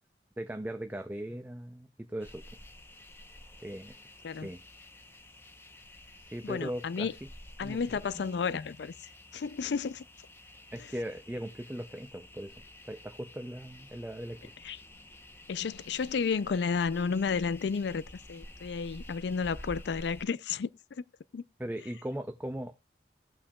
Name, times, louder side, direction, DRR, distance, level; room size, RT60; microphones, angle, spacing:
voice 1, 0.4-2.4 3.6-4.0 4.3-4.6 6.2-7.1 7.6-8.3 10.7-14.6 21.6-22.7, right 1 dB, 10° right, 0.4 m, -39 dB
sound 1, 2.2-20.2, left 1 dB, 15° left, 0.8 m, -51 dB
voice 2, 6.4-7.1 7.6-10.0 14.6-14.8 15.5-21.0 21.3-21.4, left 5 dB, 80° left, 0.4 m, -32 dB
16.5 x 5.8 x 2.3 m
head